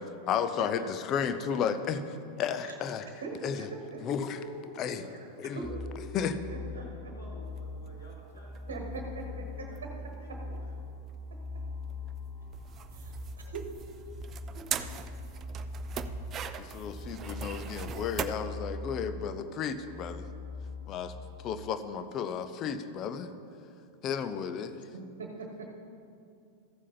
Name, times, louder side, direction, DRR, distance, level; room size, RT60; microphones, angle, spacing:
voice 1, 0.3-2.0 2.4-3.1 3.4-3.7 4.0-4.4 4.8-5.0 5.4-5.7 6.1-6.3 16.6-20.3 20.9-21.1 21.4-23.3 24.0-24.7, left 7 dB, 35° left, 10 dB, 0.6 m, -33 dB
voice 2, 3.2-4.0 5.5-7.1 8.7-9.7 10.5-10.6 12.9-13.6 14.7-14.8 24.9-25.7, right 3 dB, 65° right, 1 dB, 1.3 m, -42 dB
voice 3, 4.2-5.2 6.4-9.0 9.2-10.7 11.5-11.7, equal, 75° left, -5 dB, 2.7 m, -51 dB
sound 1, 5.6-21.5, left 2 dB, 5° left, 1.1 m, -42 dB
sound 2, 7.5-18.2, right 8 dB, 30° right, 0.5 m, -41 dB
14.0 x 7.3 x 4.2 m, 2.5 s
figure-of-eight pair, 90°, 0 cm